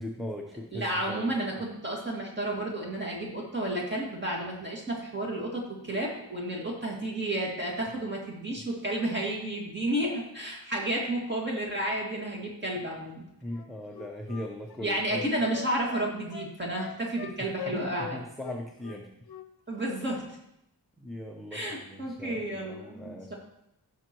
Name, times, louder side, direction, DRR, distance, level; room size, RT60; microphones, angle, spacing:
voice 1, 0.0-1.3 13.4-15.2 17.7-19.1 21.0-23.3, left 1 dB, ahead, 0 dB, 0.7 m, -39 dB
voice 2, 0.7-13.2 14.8-18.2 19.7-20.2 21.5-23.3, right 1 dB, 25° right, -2 dB, 2.1 m, -31 dB
Wind instrument woodwind instrument, 13.5-18.2 18.4-19.5 19.7-19.9, left 8 dB, 65° left, 0.7 m, -41 dB
15.0 x 6.1 x 3.0 m, 0.80 s
wide cardioid pair, 165°, 41 cm